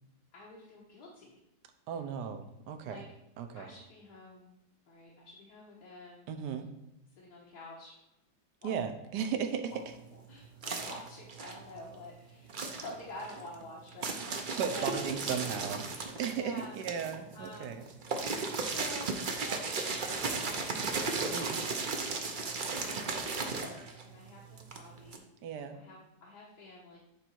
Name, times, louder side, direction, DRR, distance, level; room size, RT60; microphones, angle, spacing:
voice 1, 0.3-1.4 2.8-3.0 3.5-4.5 4.9-6.3 7.2-8.0 8.6-8.7 10.1-14.9 16.3-16.8 17.3-17.9 18.7-21.6 22.2-23.0 23.3-25.2 25.7-27.0, left 1 dB, 70° left, -5 dB, 1.8 m, -49 dB
voice 2, 1.9-3.0 3.4-3.7 6.3-6.7 8.6-9.7 14.6-15.9 16.2-17.8 21.3-21.6 25.4-25.8, right 7 dB, 75° right, 7 dB, 1.3 m, -36 dB
sound 1, 9.7-12.1 12.4-25.2, right 4 dB, 55° right, 0.5 m, -36 dB
8.7 x 3.9 x 4.6 m, 0.85 s
omnidirectional pair, 1.8 m